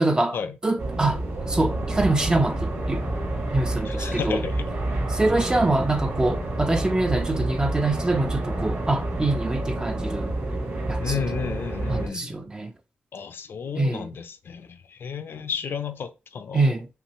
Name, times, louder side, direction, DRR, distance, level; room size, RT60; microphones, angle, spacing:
voice 1, 0.0-0.4 0.6-3.0 3.5-4.4 5.1-10.3 10.9-11.2 11.9-12.7 13.7-14.1 16.5-16.9, right 2 dB, 20° right, 0.6 m, -24 dB
sound 1, 0.8-12.1, right 1 dB, 90° right, 2.5 m, -29 dB
voice 2, 3.9-4.7 11.0-12.3 13.1-16.7, left 7 dB, 65° left, 0.6 m, -32 dB
5.7 x 2.6 x 3.0 m
wide cardioid pair, 120°, 4 cm